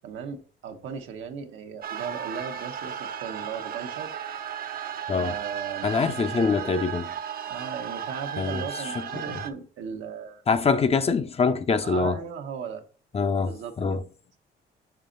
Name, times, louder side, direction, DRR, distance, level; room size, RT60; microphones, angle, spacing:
voice 1, 0.0-4.1 5.2-6.0 6.4-6.5 7.4-10.4 11.8-12.8 13.4-14.0, right 7 dB, 80° right, 1.0 m, -37 dB
sound 1, 1.8-9.5, right 8 dB, 50° right, 0.6 m, -35 dB
voice 2, 5.8-7.1 8.4-8.6 10.5-12.2 13.1-14.0, left 5 dB, 30° left, 0.6 m, -24 dB
5.7 x 5.0 x 3.8 m
cardioid pair, 90°, 20 cm